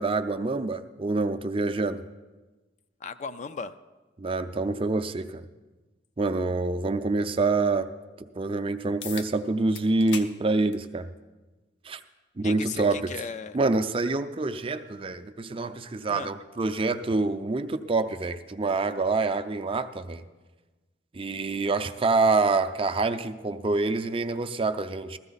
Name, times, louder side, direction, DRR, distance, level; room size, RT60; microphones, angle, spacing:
voice 1, 0.0-2.0 4.2-5.4 6.2-7.9 8.4-11.1 11.8-12.0 12.4-13.1 13.5-20.2 21.1-25.2, right 3 dB, 30° right, 10 dB, 0.5 m, -26 dB
voice 2, 3.0-3.7 12.4-13.6 16.1-16.3, left 5 dB, 40° left, 11 dB, 0.4 m, -36 dB
sound 1, 9.0-9.3 9.7-10.3 10.7-10.9 11.9-12.0 17.0-17.1, left 7 dB, 80° left, 0.8 m, -38 dB
15.5 x 13.5 x 4.0 m, 1.2 s
head